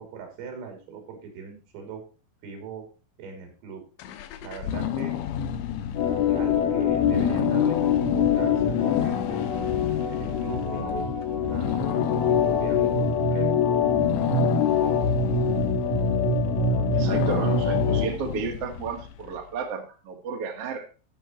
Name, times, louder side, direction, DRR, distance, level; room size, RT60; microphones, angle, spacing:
voice 1, 0.0-2.0 2.4-2.9 3.2-3.8 4.4-5.1 6.3-9.4 10.1-12.0 12.5-13.5, right 6 dB, 80° right, 3 dB, 5.5 m, -41 dB
sound 1, 4.0-19.4, left 10 dB, 75° left, 2.8 m, -32 dB
Organ, 5.9-18.1, left 5 dB, 60° left, 2.6 m, -24 dB
voice 2, 16.9-20.9, right 6 dB, 60° right, 2 dB, 1.6 m, -33 dB
14.0 x 6.4 x 4.4 m, 0.35 s
omnidirectional pair, 5.9 m